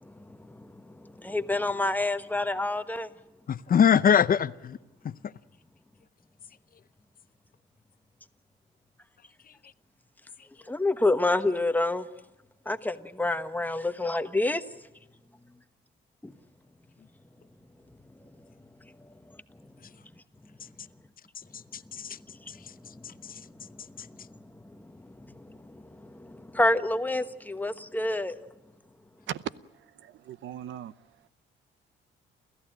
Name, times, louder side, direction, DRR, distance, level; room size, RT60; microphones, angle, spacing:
voice 1, 0.0-3.1 10.7-12.1 12.6-14.6 16.2-16.3 18.2-18.4 18.8-18.9 19.3-19.7 22.4-22.5 22.9-28.4, left 2 dB, 10° left, 1.3 m, -29 dB
voice 2, 3.5-4.8 5.0-5.3 21.4-22.2 22.5-23.4 24.0-24.1, left 8 dB, 45° left, 0.7 m, -25 dB
voice 3, 29.7-30.9, right 11 dB, 75° right, 0.8 m, -39 dB
29.5 x 14.5 x 9.0 m
cardioid pair, 90°, 20 cm